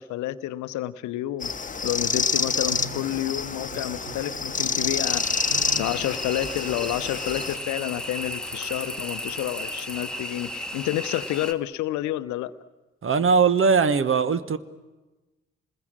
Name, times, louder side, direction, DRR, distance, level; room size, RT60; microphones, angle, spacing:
voice 1, 0.0-1.5 1.8-12.5, left 14 dB, 65° left, 15 dB, 0.8 m, -30 dB
sound 1, 1.4-7.6, left 5 dB, 25° left, 1.2 m, -28 dB
sound 2, 2.7-11.0, right 4 dB, 85° right, 1.7 m, -46 dB
sound 3, 5.0-11.5, equal, ahead, 1.8 m, -34 dB
voice 2, 13.0-14.6, right 5 dB, 40° right, 14 dB, 1.3 m, -20 dB
28.0 x 20.5 x 7.5 m, 1.1 s
figure-of-eight pair, 40°, 32 cm